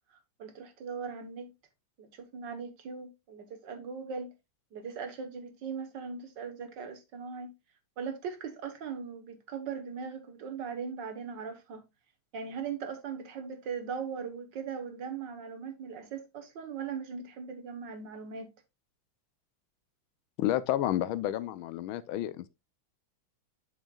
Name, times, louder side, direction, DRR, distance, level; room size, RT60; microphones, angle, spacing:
voice 1, 0.4-1.5 2.0-4.3 4.7-7.5 8.0-11.8 12.3-18.5, right 6 dB, 65° right, 1.7 m, -39 dB
voice 2, 20.4-22.5, left 13 dB, 85° left, 1.4 m, -30 dB
8.1 x 6.3 x 2.3 m
omnidirectional pair, 2.2 m